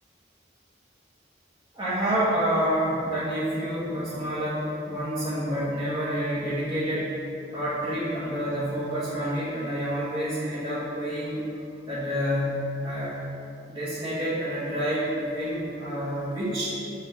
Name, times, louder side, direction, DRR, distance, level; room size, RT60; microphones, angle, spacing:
voice 1, 1.7-7.1 7.5-11.4 11.9-13.2 13.7-16.7, equal, 25° right, -11 dB, 1.4 m, -28 dB
7.2 x 3.6 x 6.0 m, 2.8 s
head